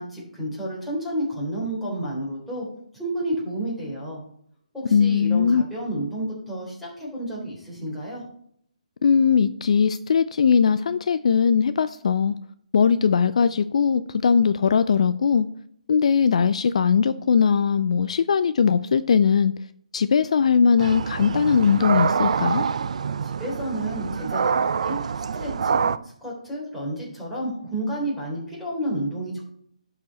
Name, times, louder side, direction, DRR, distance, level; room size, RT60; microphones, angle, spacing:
voice 1, 0.0-2.7 3.0-4.2 4.7-8.2 23.2-29.4, right 1 dB, ahead, -7 dB, 3.5 m, -31 dB
voice 2, 4.9-5.6 9.0-12.4 12.7-15.5 15.9-19.5 19.9-22.7, left 6 dB, 55° left, 13 dB, 0.4 m, -20 dB
sound 1, 20.8-26.0, right 6 dB, 60° right, 0.4 m, -25 dB
11.5 x 4.8 x 4.2 m, 0.67 s
figure-of-eight pair, 150°, 4 cm